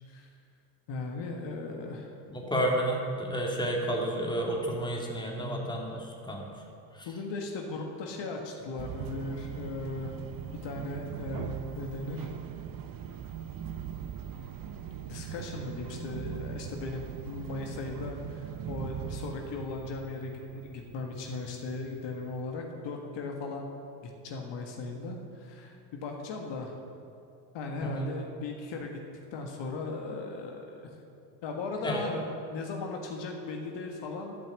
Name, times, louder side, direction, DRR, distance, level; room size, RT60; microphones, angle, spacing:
voice 1, 0.9-2.1 5.4-5.7 7.1-10.1 10.6-12.3 15.0-23.7 24.0-26.7 27.5-29.0 29.3-30.9 31.4-34.4, left 3 dB, 60° left, 1 dB, 1.7 m, -37 dB
voice 2, 2.3-6.5 6.9-7.1 27.8-28.1 31.8-32.1, right 1 dB, 10° left, -1 dB, 2.2 m, -31 dB
sound 1, 8.8-22.4, right 9 dB, 45° right, 0.9 m, -41 dB
12.0 x 6.0 x 8.0 m, 2.6 s
supercardioid pair, 85°, 49 cm